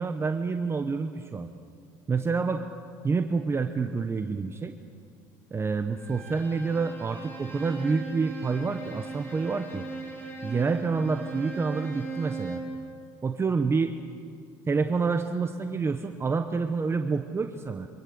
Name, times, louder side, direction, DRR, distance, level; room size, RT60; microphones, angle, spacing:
voice 1, 0.0-1.5 2.1-2.7 3.0-4.7 5.5-9.8 10.4-12.6 13.2-13.9 14.7-17.9, right 4 dB, 25° right, 7 dB, 1.1 m, -28 dB
Bowed string instrument, 6.0-12.8, right 3 dB, 25° left, 5.3 m, -38 dB
25.0 x 16.0 x 7.0 m, 2.3 s
supercardioid pair, 80°, 10 cm